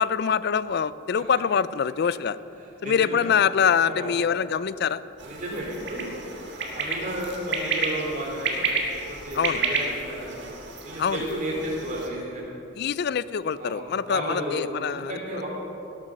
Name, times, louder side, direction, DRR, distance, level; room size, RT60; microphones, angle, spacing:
voice 1, 0.0-2.4 2.8-5.0 9.3-9.6 11.0-11.2 12.8-15.1, left 7 dB, 55° left, 17 dB, 0.4 m, -24 dB
voice 2, 2.6-3.3 3.9-4.1 5.2-6.1 6.5-10.5 10.8-12.5 13.6-15.5, right 1 dB, 40° right, -3 dB, 3.7 m, -33 dB
sound 1, 5.2-12.1, right 4 dB, 60° right, 1.6 m, -31 dB
17.0 x 8.4 x 6.5 m, 2.9 s
head